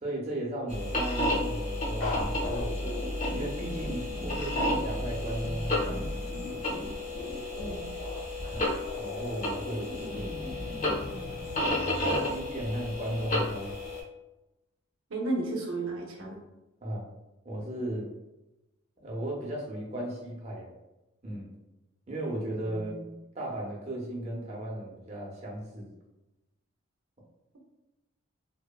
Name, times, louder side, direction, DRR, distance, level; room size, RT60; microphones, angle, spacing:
voice 1, 0.0-6.6 8.5-10.5 11.8-13.8 16.8-17.1 17.4-18.1 19.0-20.7 21.2-21.5 22.1-22.9 23.3-25.9, right 1 dB, 30° right, -2 dB, 0.6 m, -36 dB
sound 1, 0.7-14.0, left 1 dB, 35° left, 0.6 m, -32 dB
sound 2, 2.0-12.2, left 2 dB, 60° left, 1.0 m, -39 dB
voice 2, 7.6-8.0 15.1-16.4 22.7-23.0, right 2 dB, 70° right, 0 dB, 0.6 m, -34 dB
2.8 x 2.1 x 2.3 m, 0.99 s
head